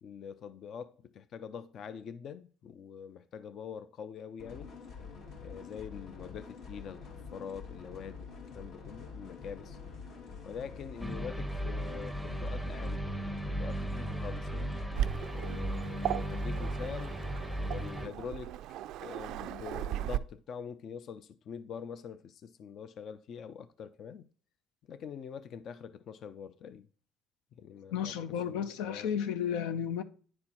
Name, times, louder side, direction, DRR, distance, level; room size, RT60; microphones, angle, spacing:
voice 1, 0.0-4.7 5.4-9.8 10.4-13.0 13.5-14.7 15.3-17.1 17.7-18.6 19.0-24.3 24.9-26.9 27.6-28.1 28.4-29.1, left 7 dB, 50° left, 0.5 m, -44 dB
sound 1, 4.4-15.0, left 5 dB, 65° left, 2.4 m, -47 dB
sound 2, 11.0-18.1, right 1 dB, 5° left, 0.7 m, -36 dB
Waves surf, 14.9-20.2, right 13 dB, 70° right, 0.3 m, -37 dB
voice 2, 27.9-30.0, left 8 dB, 90° left, 0.7 m, -33 dB
9.8 x 4.3 x 4.3 m
cardioid pair, 115°, 0 cm